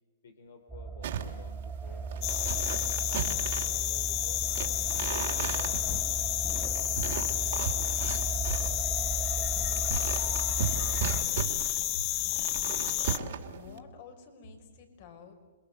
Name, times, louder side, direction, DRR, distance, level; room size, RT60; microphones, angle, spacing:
voice 1, 0.2-2.8 3.6-8.0 8.5-10.1 10.6-11.6 13.6-13.9, left 6 dB, 70° left, 7 dB, 2.8 m, -54 dB
sound 1, 0.7-11.3, right 5 dB, 5° right, 0.7 m, -37 dB
sound 2, 1.0-13.8, right 8 dB, 55° right, 2.9 m, -37 dB
sound 3, 2.2-13.2, left 15 dB, 30° left, 0.8 m, -31 dB
voice 2, 13.1-15.3, left 3 dB, 45° left, 5 dB, 5.5 m, -48 dB
27.5 x 22.0 x 8.0 m, 1.3 s
hypercardioid pair, 150°, 0 cm